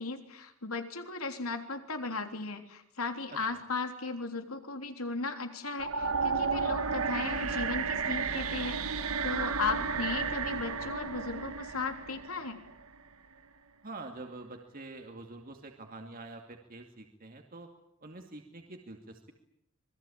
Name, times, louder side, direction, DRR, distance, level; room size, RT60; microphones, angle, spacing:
voice 1, 0.0-12.6, left 4 dB, 80° left, 6 dB, 3.5 m, -36 dB
sound 1, 5.8-12.9, right 5 dB, 80° right, 1.8 m, -32 dB
voice 2, 13.8-17.7 18.0-19.3, right 2 dB, 40° right, 3 dB, 2.5 m, -46 dB
26.5 x 21.5 x 8.7 m, 0.74 s
head